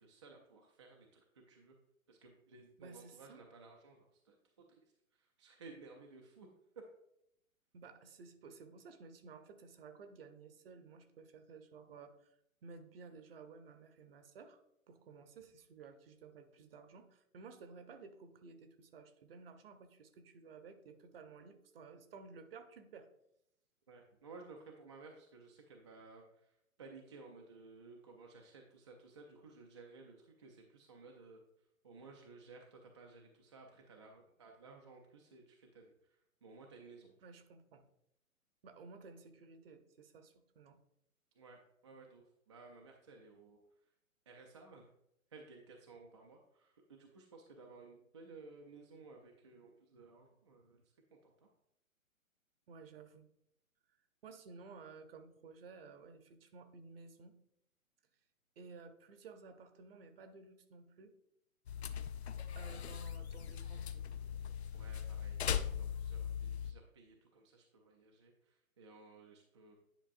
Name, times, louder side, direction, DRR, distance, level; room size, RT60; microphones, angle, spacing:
voice 1, 0.0-1.7 2.1-4.8 5.1-6.5 6.8-6.9 23.9-26.5 26.8-31.4 31.8-35.9 36.4-37.1 41.4-43.6 44.3-44.8 45.3-50.8 51.2-51.5 64.7-65.4 65.8-69.8, right 4 dB, 25° right, 0 dB, 0.4 m, -57 dB
voice 2, 2.8-3.5 7.7-12.3 12.6-14.6 14.9-23.1 37.2-37.8 38.6-40.8 52.7-53.3 53.9-54.0 54.2-57.3 58.6-61.1 62.5-64.1, right 4 dB, 45° right, 8 dB, 0.9 m, -55 dB
sound 1, 61.7-66.7, left 8 dB, 50° left, 0.5 m, -40 dB
10.0 x 5.1 x 2.5 m, 0.78 s
figure-of-eight pair, 125°, 41 cm